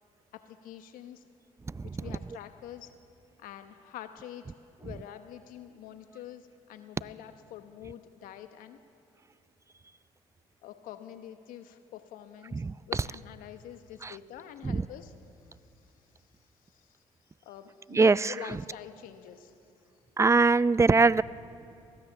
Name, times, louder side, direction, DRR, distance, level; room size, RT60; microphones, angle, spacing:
voice 1, 0.3-1.2 2.0-2.9 3.4-4.5 4.8-8.8 10.6-15.1 15.4-15.9 16.6-17.0 17.4-19.7, left 11 dB, 80° left, 9 dB, 1.1 m, -46 dB
voice 2, 1.7-2.0 12.5-13.0 14.0-14.1 14.6-14.8 17.9-18.6 20.2-21.2, right 4 dB, 20° right, 19 dB, 0.5 m, -23 dB
23.5 x 16.0 x 7.1 m, 2.7 s
supercardioid pair, 65°, 14 cm